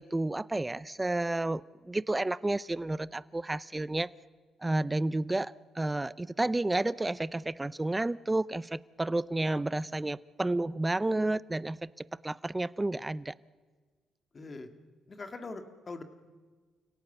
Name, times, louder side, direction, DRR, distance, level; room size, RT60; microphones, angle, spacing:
voice 1, 0.0-4.1 4.6-13.3, right 2 dB, 15° right, 19 dB, 0.6 m, -31 dB
voice 2, 14.3-14.7 15.1-16.0, left 3 dB, 35° left, 7 dB, 2.2 m, -42 dB
29.5 x 17.5 x 6.9 m, 1.5 s
cardioid pair, 90°, 0 cm